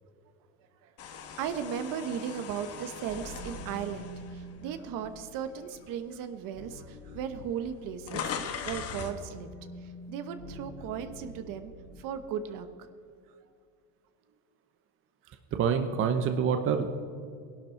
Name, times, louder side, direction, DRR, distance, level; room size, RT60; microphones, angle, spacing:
voice 1, 0.8-9.5 9.8-11.7 12.0-12.9, right 8 dB, 60° right, 10 dB, 1.1 m, -37 dB
sound 1, 1.0-5.2 5.7-5.9 6.8-6.9 7.1-9.2, left 7 dB, 40° left, 1.4 m, -40 dB
sound 2, 3.1-12.2, left 1 dB, 5° left, 2.0 m, -47 dB
voice 2, 15.5-17.0, right 6 dB, 35° right, 7 dB, 0.8 m, -27 dB
19.0 x 11.5 x 4.5 m, 2.3 s
cardioid pair, 145°, 38 cm